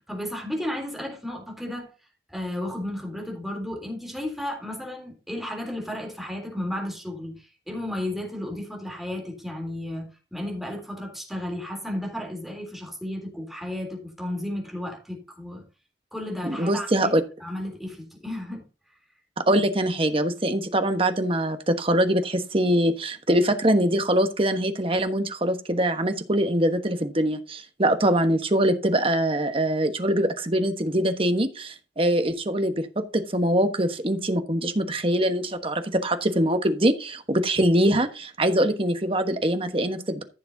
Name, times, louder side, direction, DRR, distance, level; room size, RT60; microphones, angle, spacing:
voice 1, 0.1-1.9 2.3-15.6 16.1-17.1 17.4-18.6, left 1 dB, ahead, 3.4 m, -33 dB
voice 2, 16.4-17.2 19.5-40.2, right 1 dB, 30° right, 1.3 m, -23 dB
14.5 x 7.0 x 2.8 m
head